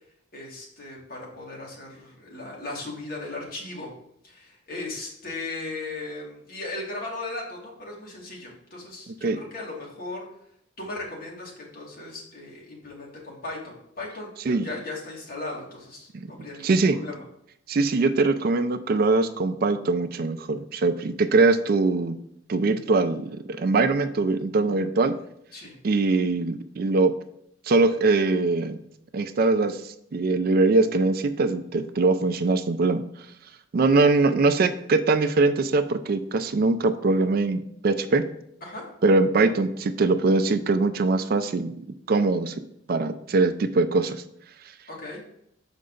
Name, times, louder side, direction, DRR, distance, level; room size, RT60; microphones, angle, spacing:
voice 1, 0.3-3.9 4.2-10.3 10.8-17.2 25.5-25.8 38.6-38.8 44.9-45.2, left 2 dB, 50° left, -3 dB, 2.1 m, -37 dB
voice 2, 16.6-17.0 17.7-22.2 22.5-25.2 25.8-27.2 27.7-28.8 29.1-33.0 33.7-38.3 39.0-41.8 42.1-42.5 42.9-44.2, right 3 dB, 50° right, 11 dB, 0.4 m, -22 dB
6.7 x 5.2 x 3.8 m, 0.74 s
head